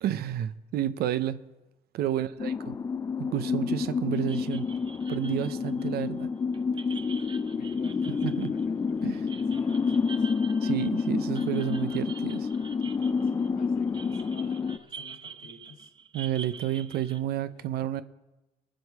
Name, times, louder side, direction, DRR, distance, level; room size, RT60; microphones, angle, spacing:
voice 1, 0.0-1.4 1.9-2.7 3.2-4.7 5.1-6.3 8.2-8.5 9.0-9.2 10.6-12.5 16.1-18.0, right 11 dB, 70° right, 0.7 m, -30 dB
sound 1, 2.4-14.8, left 5 dB, 20° left, 0.4 m, -29 dB
sound 2, 4.1-17.2, right 6 dB, 30° right, 0.7 m, -47 dB
voice 2, 6.8-10.3 13.2-15.9 17.4-17.7, left 4 dB, 60° left, 2.3 m, -52 dB
22.0 x 7.7 x 4.7 m
cardioid pair, 110°, 17 cm